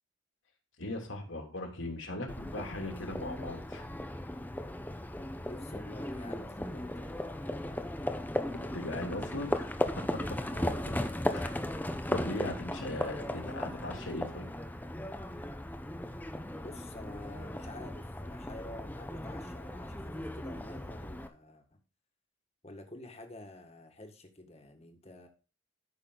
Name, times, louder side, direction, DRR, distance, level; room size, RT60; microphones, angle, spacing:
voice 1, 0.8-3.8 8.5-9.7 10.0-10.4 11.3-11.5 12.1-14.5, left 2 dB, 70° left, 1 dB, 3.1 m, -39 dB
Livestock farm animals working animals, 2.3-21.3, left 1 dB, 10° left, 0.8 m, -37 dB
voice 2, 5.4-7.9 10.4-11.0 16.6-21.8 22.6-25.3, left 2 dB, 30° left, 4 dB, 1.9 m, -49 dB
13.5 x 6.3 x 4.0 m, 0.33 s
head